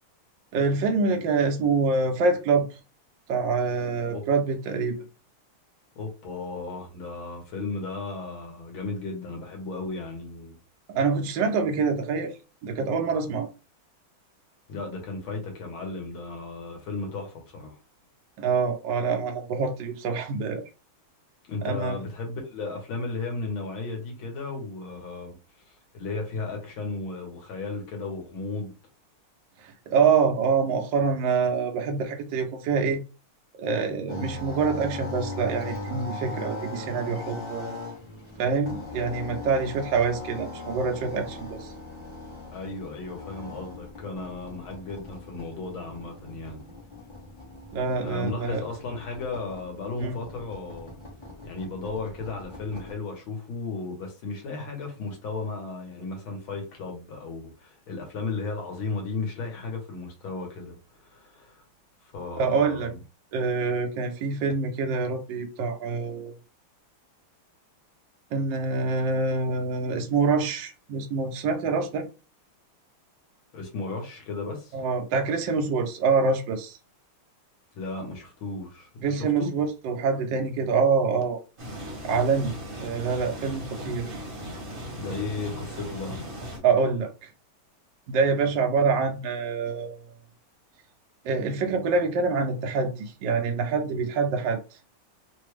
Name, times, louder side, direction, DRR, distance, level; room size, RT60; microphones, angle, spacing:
voice 1, 0.5-2.7 3.3-5.0 10.9-12.3 12.6-13.5 18.4-20.6 21.6-22.0 29.6-33.0 33.6-37.8 38.4-41.7 47.7-48.6 50.0-50.2 62.3-62.9 63.3-66.3 68.3-72.1 74.7-76.8 79.0-81.4 82.0-82.5 82.8-84.2 86.6-87.3 88.1-90.1 91.2-94.6, right 4 dB, 70° right, 1.1 m, -25 dB
voice 2, 6.0-10.6 14.7-17.8 21.5-25.4 25.7-28.7 42.5-46.6 48.0-51.0 51.4-61.6 62.1-63.0 73.5-74.8 77.8-79.5 85.0-86.2, left 3 dB, 70° left, 1.8 m, -35 dB
sound 1, 34.1-52.9, left 2 dB, 25° left, 0.6 m, -39 dB
sound 2, 81.6-86.6, equal, 35° right, 0.9 m, -37 dB
3.9 x 2.2 x 3.2 m
omnidirectional pair, 2.4 m